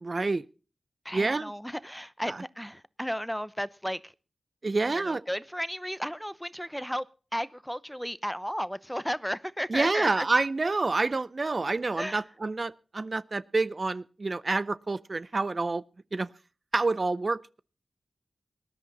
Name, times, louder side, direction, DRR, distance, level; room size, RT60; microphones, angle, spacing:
voice 1, 0.0-0.5 1.1-1.5 2.3-2.4 4.6-5.2 9.7-15.8 16.1-16.3 16.7-17.6, right 3 dB, 50° right, 0.6 m, -28 dB
voice 2, 1.0-4.1 4.9-7.1 7.3-10.3 12.0-12.2, equal, ahead, 0.8 m, -34 dB
20.0 x 11.0 x 4.1 m
cardioid pair, 55°, 0 cm